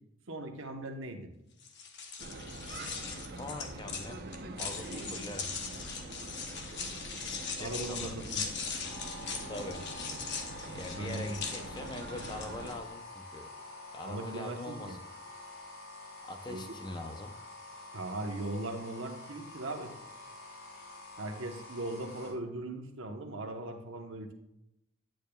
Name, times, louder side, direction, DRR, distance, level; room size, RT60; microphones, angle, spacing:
voice 1, 0.3-1.3 7.6-8.5 11.0-11.4 14.0-15.0 16.5-16.6 17.9-20.0 21.2-24.3, right 2 dB, 65° right, 4 dB, 1.0 m, -39 dB
sound 1, 1.6-12.7, left 5 dB, 50° left, 0.9 m, -40 dB
sound 2, 2.2-12.8, right 2 dB, 45° right, 0.7 m, -44 dB
voice 2, 3.3-4.3 4.5-5.5 7.5-8.3 9.5-9.9 10.7-13.5 13.9-15.0 16.2-17.4, left 2 dB, 20° left, 6 dB, 0.5 m, -43 dB
sound 3, 8.8-22.3, left 2 dB, 75° left, 2.8 m, -48 dB
9.1 x 8.7 x 2.3 m, 0.84 s
head